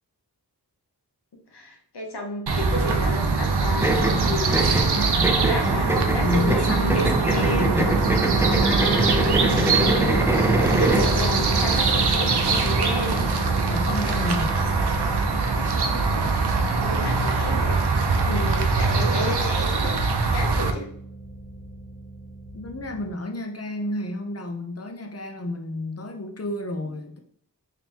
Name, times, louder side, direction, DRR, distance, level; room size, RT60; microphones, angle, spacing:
voice 1, 1.5-4.7 5.5-7.8 8.6-13.3 15.9-16.3 16.7-18.0 18.3-20.0 20.3-20.9, left 1 dB, 90° left, 1 dB, 0.9 m, -32 dB
sound 1, 2.5-20.7, right 4 dB, 80° right, 0.5 m, -23 dB
sound 2, 3.8-11.2, right 1 dB, 5° right, 0.4 m, -25 dB
voice 2, 6.2-8.0 13.7-14.6 22.5-27.2, left 1 dB, 40° left, 4 dB, 0.6 m, -30 dB
sound 3, 7.5-23.1, right 2 dB, 60° left, 1.5 m, -32 dB
3.6 x 2.8 x 2.9 m, 0.63 s
wide cardioid pair, 45°, 39 cm